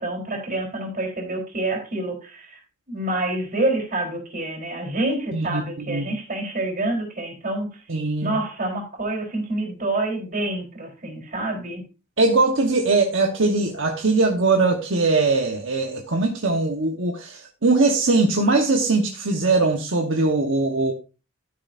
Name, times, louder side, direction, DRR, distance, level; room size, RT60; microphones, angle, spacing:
voice 1, 0.0-2.6 2.9-7.8 8.2-11.8, right 2 dB, 45° right, 3.8 m, -27 dB
voice 2, 7.9-8.4 12.2-20.9, right 3 dB, 65° right, 1.2 m, -21 dB
13.0 x 9.7 x 2.6 m
head